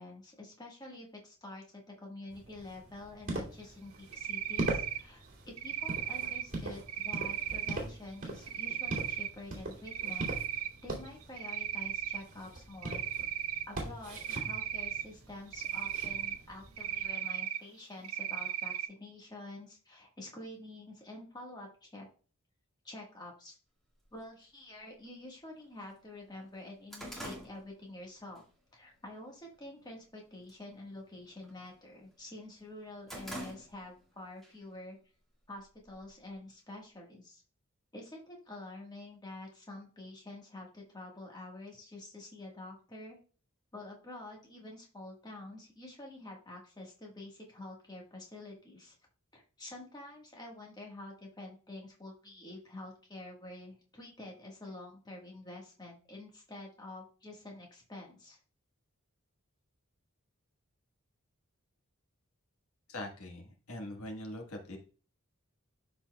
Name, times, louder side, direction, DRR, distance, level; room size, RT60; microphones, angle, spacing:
voice 1, 0.0-10.3 10.8-13.0 13.7-22.1 22.8-23.6 24.1-28.4 28.7-35.0 35.5-37.4 37.9-43.2 43.7-48.9 49.3-58.4, left 2 dB, 20° left, -1 dB, 1.5 m, -48 dB
sound 1, 2.3-17.1, right 2 dB, 40° right, 2.6 m, -42 dB
Cricket, 4.1-5.0 5.6-6.4 6.9-7.7 8.5-9.3 9.7-10.7 11.1-12.2 12.8-13.6 14.2-15.0 15.5-16.4 16.8-17.6 18.0-18.9, right 11 dB, 80° right, 0.6 m, -36 dB
sound 2, 24.1-24.2 25.1-25.2 25.6-25.7 26.0-28.5 28.8-29.2 29.6-30.1 30.4-30.7 31.0-32.2 32.6-34.1 34.4-34.6 35.4-36.3, right 1 dB, ahead, 1.7 m, -46 dB
voice 2, 62.9-64.8, left 1 dB, 80° left, 3 dB, 1.5 m, -42 dB
12.5 x 4.3 x 2.3 m, 0.38 s
head